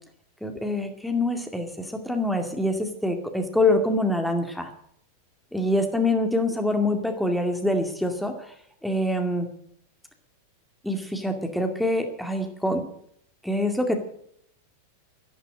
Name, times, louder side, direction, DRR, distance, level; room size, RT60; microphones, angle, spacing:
voice 1, 0.4-4.7 5.5-8.5 8.8-9.5 10.8-12.8 13.4-14.0, left 1 dB, ahead, 5 dB, 2.2 m, -25 dB
12.5 x 12.0 x 8.8 m, 0.69 s
figure-of-eight pair, 90°, 0 cm